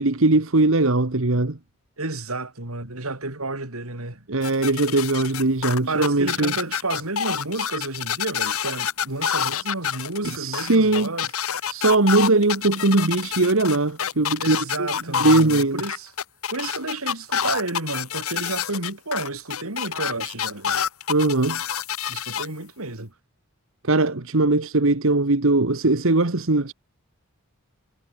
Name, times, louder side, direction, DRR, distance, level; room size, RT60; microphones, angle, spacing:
voice 1, 0.0-1.6 4.3-6.5 10.2-11.1 11.7-15.8 21.1-21.6 23.8-26.7, right 2 dB, 65° right, 1.5 m, -20 dB
voice 2, 2.0-4.2 5.9-11.3 14.4-16.1 16.5-20.8 22.1-23.1, right 2 dB, 85° right, 4.2 m, -31 dB
sound 1, 4.4-22.5, left 8 dB, 85° left, 1.3 m, -27 dB
head